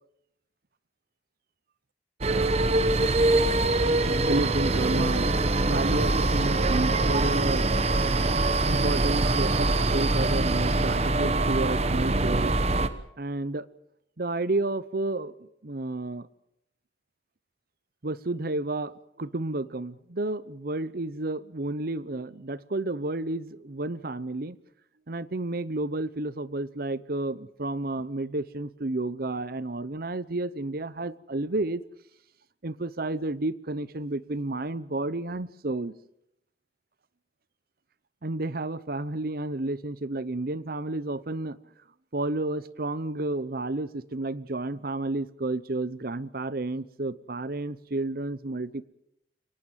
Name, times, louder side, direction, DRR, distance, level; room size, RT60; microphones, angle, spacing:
sound 1, 2.2-12.9, right 2 dB, 40° right, 1.2 m, -24 dB
voice 1, 4.2-5.3 5.6-7.7 8.6-12.5 13.2-13.7 14.2-16.3 18.0-24.6 25.1-31.8 32.6-35.9 38.2-41.6 42.1-48.9, right 2 dB, 55° right, 17 dB, 0.9 m, -31 dB
23.5 x 19.0 x 7.5 m, 0.77 s
head